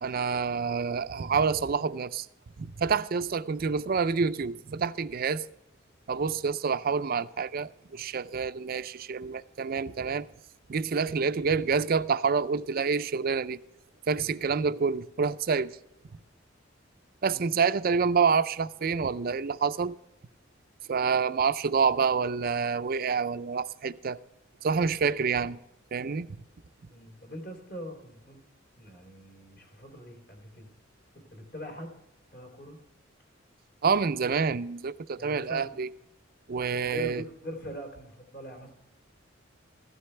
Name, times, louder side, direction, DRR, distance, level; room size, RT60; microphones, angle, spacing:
voice 1, 0.0-2.3 2.6-5.5 6.1-10.3 10.7-13.6 14.1-15.8 17.2-20.0 20.9-24.2 24.6-25.6 25.9-26.3 33.8-35.9 36.5-37.2, right 5 dB, 45° right, 0.5 m, -27 dB
voice 2, 26.9-28.4 28.8-30.7 31.1-31.9 32.3-32.8 35.2-35.7 36.8-38.7, equal, 55° left, 3.3 m, -42 dB
15.5 x 13.0 x 3.3 m
head